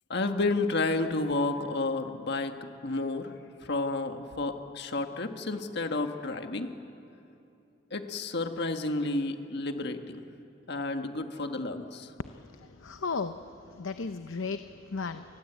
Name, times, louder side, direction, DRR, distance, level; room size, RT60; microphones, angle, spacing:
voice 1, 0.1-6.7 7.9-10.2 10.7-12.1, left 2 dB, 60° left, 6 dB, 1.6 m, -31 dB
voice 2, 12.8-13.4 13.8-15.2, left 4 dB, 90° left, 9 dB, 0.7 m, -34 dB
29.0 x 20.0 x 8.3 m, 2.7 s
head